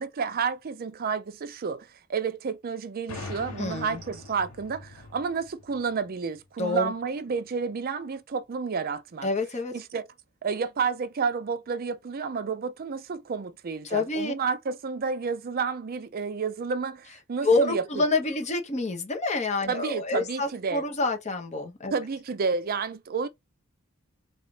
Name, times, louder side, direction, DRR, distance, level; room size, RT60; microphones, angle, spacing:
voice 1, 0.0-9.3 9.7-10.1 10.4-18.0 19.7-20.8 21.9-23.3, right 5 dB, 45° right, 0.4 m, -30 dB
sound 1, 3.1-6.7, left 3 dB, 85° left, 0.8 m, -43 dB
voice 2, 3.6-4.0 6.6-6.9 9.2-9.7 13.8-14.3 17.4-21.9, left 2 dB, 35° left, 1.0 m, -27 dB
4.1 x 2.5 x 3.2 m
head